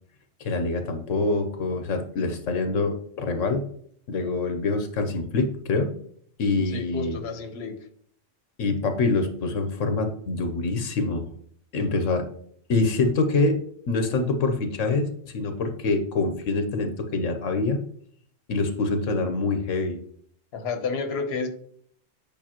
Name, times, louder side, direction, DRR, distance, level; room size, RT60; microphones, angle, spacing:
voice 1, 0.4-3.7 4.1-5.9 6.4-7.2 8.6-11.3 11.7-12.2 12.7-13.6 13.9-17.8 18.5-20.0, left 3 dB, 90° left, 6 dB, 1.3 m, -25 dB
voice 2, 6.7-7.8 20.5-21.5, left 4 dB, 60° left, 6 dB, 1.1 m, -30 dB
8.8 x 5.4 x 3.0 m, 0.62 s
omnidirectional pair, 1.3 m